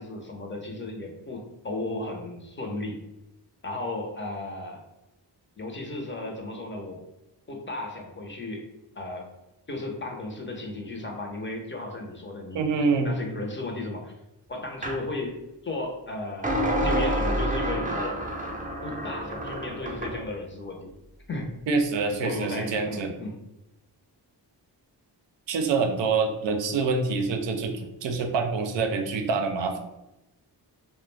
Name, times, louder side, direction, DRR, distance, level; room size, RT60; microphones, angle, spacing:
voice 1, 0.0-3.0 3.6-4.8 5.6-7.0 7.5-8.7 9.0-9.3 9.7-12.7 13.0-14.2 14.5-18.2 18.8-20.9 21.3-21.5 22.2-23.4, left 2 dB, 25° left, 2 dB, 0.6 m, -35 dB
voice 2, 12.5-13.1 21.7-23.1 25.5-29.8, right 4 dB, 75° right, 5 dB, 0.5 m, -26 dB
sound 1, 14.8-15.0 16.4-20.2, right 1 dB, 20° right, 0.5 m, -28 dB
2.3 x 2.1 x 3.2 m, 0.96 s
cardioid pair, 75°, 44 cm